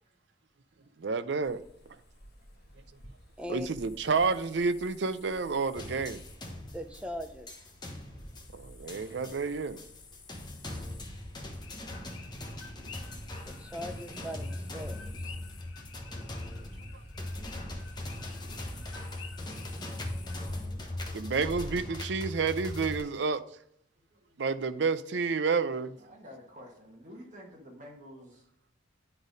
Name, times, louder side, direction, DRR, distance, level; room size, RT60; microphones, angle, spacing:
voice 1, 1.0-1.6 3.5-6.2 8.5-9.8 21.1-23.4 24.4-26.0, right 4 dB, 60° right, 0.5 m, -30 dB
sound 1, 1.4-20.8, left 2 dB, 55° left, 1.3 m, -54 dB
voice 2, 2.4-2.9 6.5-6.6 10.4-10.6 24.0-24.4 26.0-28.5, equal, 40° right, 1.6 m, -53 dB
sound 2, 5.7-23.0, left 1 dB, 20° left, 1.0 m, -40 dB
voice 3, 6.7-7.5 13.5-15.4, left 1 dB, 5° right, 0.6 m, -40 dB
sound 3, 11.6-20.4, left 6 dB, 80° left, 1.0 m, -52 dB
9.9 x 4.0 x 5.0 m
head